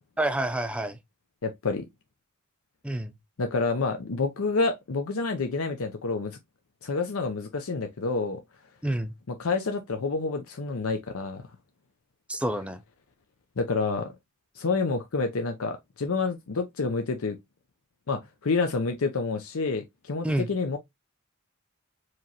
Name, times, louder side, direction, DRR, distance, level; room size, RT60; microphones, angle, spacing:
voice 1, 0.2-1.0 2.8-3.1 8.8-9.1 12.3-12.8 20.2-20.5, right 1 dB, 5° right, 0.4 m, -28 dB
voice 2, 1.4-1.8 3.4-6.4 6.8-8.4 9.3-11.4 13.6-14.1 14.6-17.4 18.1-20.8, left 4 dB, 80° left, 0.6 m, -28 dB
4.8 x 3.0 x 2.8 m
head